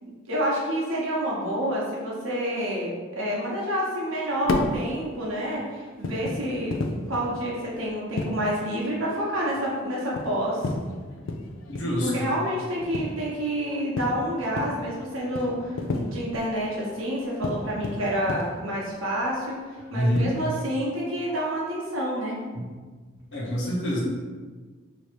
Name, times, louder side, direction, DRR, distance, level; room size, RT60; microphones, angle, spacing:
voice 1, 0.0-6.8 7.1-10.6 12.0-19.6 19.9-22.4, equal, 85° right, -4 dB, 1.0 m, -28 dB
sound 1, 4.3-20.5, left 2 dB, 80° left, 0.4 m, -34 dB
voice 2, 11.7-12.3 19.9-20.3 22.5-22.6 23.3-24.0, equal, 60° left, -5 dB, 0.9 m, -26 dB
3.1 x 2.6 x 4.4 m, 1.4 s
head